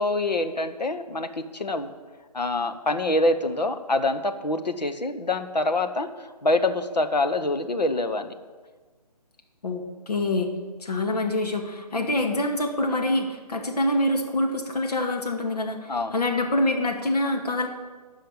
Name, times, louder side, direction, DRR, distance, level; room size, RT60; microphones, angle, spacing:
voice 1, 0.0-1.9 2.3-8.3 12.0-12.2 15.9-16.1, left 2 dB, 85° left, 7 dB, 1.1 m, -26 dB
voice 2, 9.6-10.5 10.8-17.7, left 1 dB, 65° left, 2 dB, 2.3 m, -25 dB
13.0 x 5.7 x 8.7 m, 1.4 s
figure-of-eight pair, 150°, 21 cm